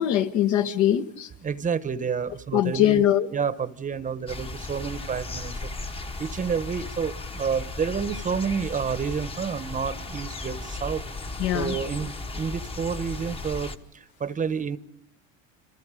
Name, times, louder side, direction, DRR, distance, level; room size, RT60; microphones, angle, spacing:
voice 1, 0.0-1.3 2.5-3.3 11.4-11.7, left 11 dB, 60° left, 1.5 m, -22 dB
voice 2, 1.4-3.0 3.3-5.9 6.2-11.0 11.5-14.8, right 6 dB, 25° right, 1.0 m, -29 dB
sound 1, 4.3-13.8, left 2 dB, 15° left, 1.1 m, -36 dB
28.5 x 27.0 x 5.0 m
supercardioid pair, 125°, 33 cm